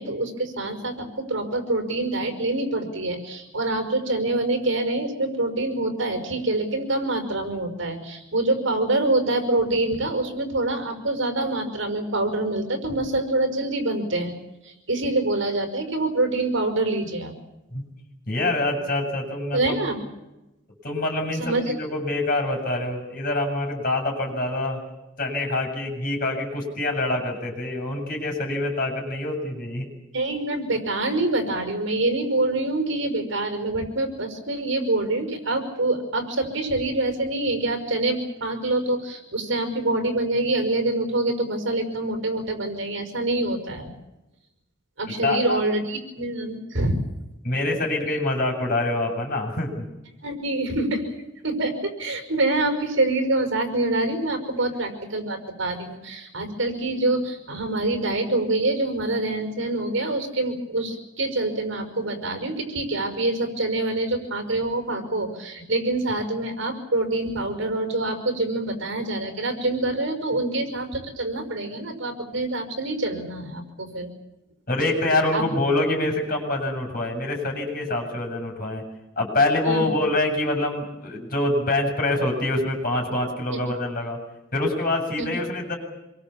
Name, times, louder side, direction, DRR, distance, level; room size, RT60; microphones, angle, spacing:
voice 1, 0.0-14.4 14.6-17.3 19.5-20.0 21.4-21.7 30.1-43.9 45.0-47.0 50.2-51.1 51.4-74.1 75.3-75.4 79.6-79.9 85.2-85.3, right 2 dB, 75° right, 6 dB, 5.6 m, -26 dB
voice 2, 18.3-19.8 20.8-24.8 25.2-29.9 45.1-45.6 47.4-49.9 74.7-78.8 79.2-84.2 84.5-85.7, left 2 dB, 45° left, 2 dB, 7.7 m, -25 dB
26.5 x 23.0 x 7.3 m, 0.98 s
head